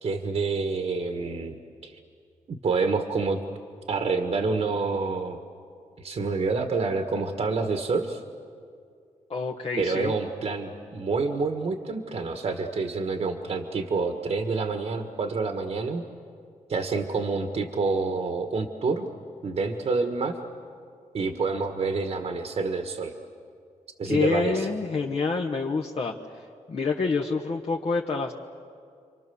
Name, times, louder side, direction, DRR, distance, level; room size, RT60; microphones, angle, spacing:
voice 1, 0.0-1.6 1.8-2.0 2.5-3.4 3.9-5.4 6.0-8.2 9.8-16.0 16.7-19.1 19.4-20.4 21.1-23.2 24.0-24.7, right 4 dB, 55° right, 5 dB, 1.6 m, -28 dB
voice 2, 9.3-10.1 24.0-28.3, left 4 dB, 50° left, 0 dB, 1.4 m, -27 dB
30.0 x 24.5 x 7.1 m, 2.3 s
cardioid pair, 100°, 13 cm